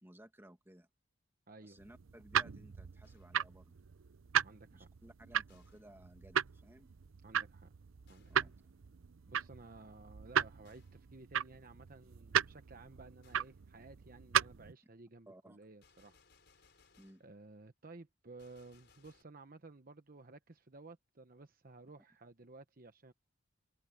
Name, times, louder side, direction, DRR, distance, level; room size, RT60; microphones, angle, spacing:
voice 1, 0.0-0.9 1.6-3.7 4.7-6.9 8.3-8.5 15.3-15.6 17.0-17.2, right 1 dB, 10° right, 2.2 m, -58 dB
voice 2, 1.5-1.8 4.4-4.9 7.2-7.7 8.1-8.5 9.3-16.2 17.2-23.1, right 3 dB, 45° right, 1.0 m, -55 dB
sound 1, 1.8-14.7, right 8 dB, 80° right, 0.6 m, -37 dB
Gunshot gunfire, 3.0-3.5 5.5-6.0 8.1-8.5 10.6-11.1 13.2-13.6 15.8-17.4 18.4-19.2, left 5 dB, 55° left, 5.6 m, -69 dB
head